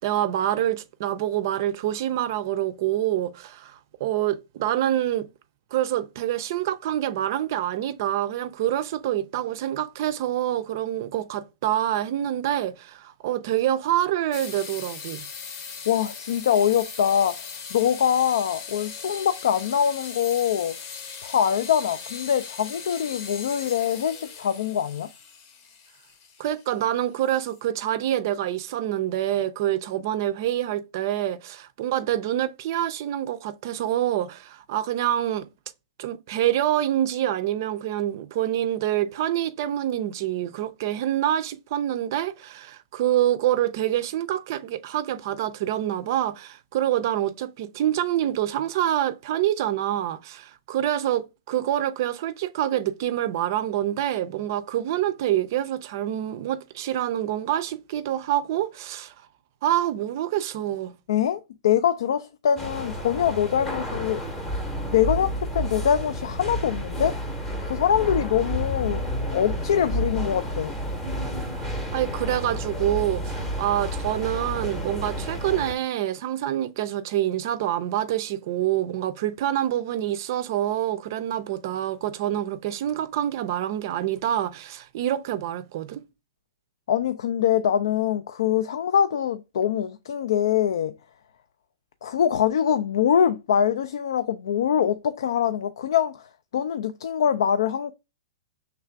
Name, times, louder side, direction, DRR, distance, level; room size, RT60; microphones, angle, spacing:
voice 1, 0.0-5.3 5.7-15.2 26.4-35.5 36.0-59.1 59.6-60.9 71.4-86.0, right 12 dB, 50° right, 0.4 m, -26 dB
sound 1, 14.3-27.7, left 6 dB, 40° left, 0.7 m, -39 dB
voice 2, 15.9-20.7 21.2-25.1 61.1-64.2 64.9-67.2 67.7-69.1 69.3-70.8 86.9-90.9 92.0-97.9, left 9 dB, 75° left, 0.3 m, -24 dB
sound 2, 62.6-75.7, equal, 10° left, 0.7 m, -30 dB
3.2 x 2.4 x 4.4 m
hypercardioid pair, 155°, 2 cm